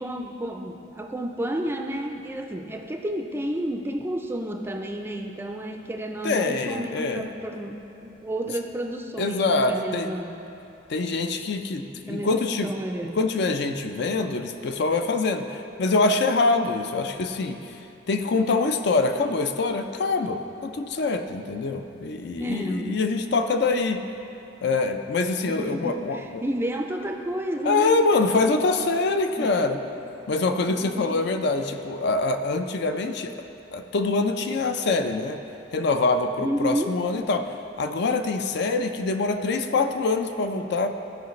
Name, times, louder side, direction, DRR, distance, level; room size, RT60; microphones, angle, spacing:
voice 1, 0.0-10.4 12.0-13.2 22.3-23.0 25.5-28.1 29.4-29.5 30.8-31.2 36.4-37.0, right 1 dB, 10° right, 4 dB, 0.4 m, -31 dB
voice 2, 6.2-7.3 9.2-10.1 10.9-12.7 13.1-17.7 18.1-24.0 24.6-26.4 27.6-29.8 30.3-33.3 33.7-35.4 35.7-40.9, left 3 dB, 60° left, 7 dB, 0.4 m, -24 dB
14.0 x 5.0 x 3.1 m, 2.9 s
head